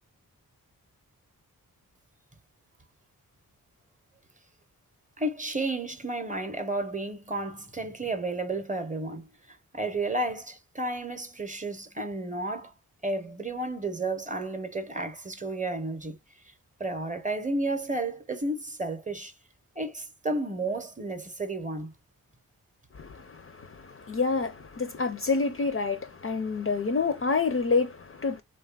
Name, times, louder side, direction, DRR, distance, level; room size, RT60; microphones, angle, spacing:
voice 1, 5.2-12.7 13.0-16.2 16.8-19.3 19.8-21.9, right 2 dB, 20° right, 0.7 m, -32 dB
voice 2, 22.9-28.4, left 4 dB, 40° left, 0.5 m, -28 dB
3.1 x 2.3 x 2.2 m
cardioid pair, 55°, 36 cm